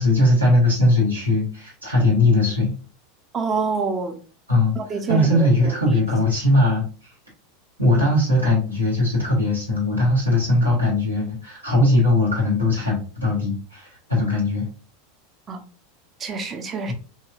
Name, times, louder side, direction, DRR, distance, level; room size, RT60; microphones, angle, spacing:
voice 1, 0.0-2.7 4.5-4.7 5.1-6.8 7.8-14.7 16.9-17.0, left 1 dB, 85° right, 1.3 m, -19 dB
voice 2, 3.3-4.2 4.8-5.5 15.5-15.6 16.2-16.9, right 4 dB, 25° right, 0.6 m, -26 dB
2.9 x 2.8 x 2.4 m
figure-of-eight pair, 85°, 0 cm